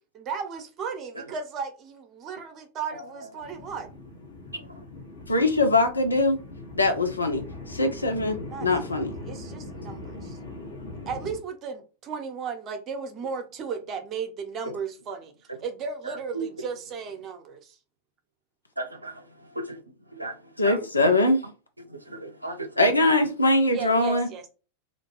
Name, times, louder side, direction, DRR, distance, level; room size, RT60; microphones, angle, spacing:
voice 1, 0.1-3.9 8.5-10.4 11.1-15.3 15.6-17.8 23.7-24.5, right 5 dB, 30° right, 0.7 m, -35 dB
sound 1, 3.4-11.4, left 2 dB, 55° left, 1.1 m, -40 dB
voice 2, 5.3-6.4 6.8-9.1 20.6-21.4 22.8-24.3, left 2 dB, 80° left, 0.6 m, -22 dB
voice 3, 18.8-19.2 20.2-20.3 20.6-20.8 21.1-21.2 21.9-22.7, right 2 dB, 85° right, 0.4 m, -34 dB
2.5 x 2.2 x 3.0 m
figure-of-eight pair, 90°, 0 cm